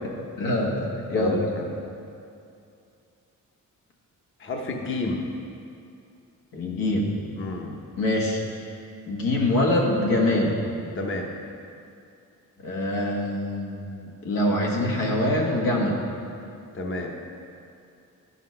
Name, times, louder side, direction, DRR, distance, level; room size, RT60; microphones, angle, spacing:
voice 1, 0.4-1.4 6.5-7.2 8.0-8.4 9.0-10.7 12.6-13.9 14.2-16.0, left 1 dB, 90° left, -2 dB, 1.6 m, -24 dB
voice 2, 1.1-1.6 4.4-5.2 7.4-7.7 10.9-11.3 16.7-17.1, left 2 dB, 35° left, 1 dB, 0.9 m, -30 dB
10.5 x 5.8 x 5.7 m, 2.6 s
cardioid pair, 125°, 34 cm